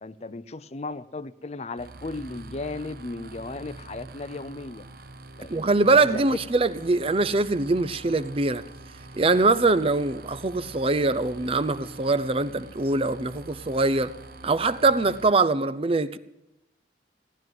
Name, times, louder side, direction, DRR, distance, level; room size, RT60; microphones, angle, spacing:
voice 1, 0.0-4.9 5.4-5.6 6.0-6.4, left 3 dB, 35° left, 0.6 m, -35 dB
sound 1, 1.8-15.3, right 2 dB, 55° right, 1.0 m, -45 dB
voice 2, 5.5-8.6 9.1-14.1 14.4-16.2, right 3 dB, 30° right, 0.6 m, -23 dB
17.0 x 11.0 x 7.7 m
head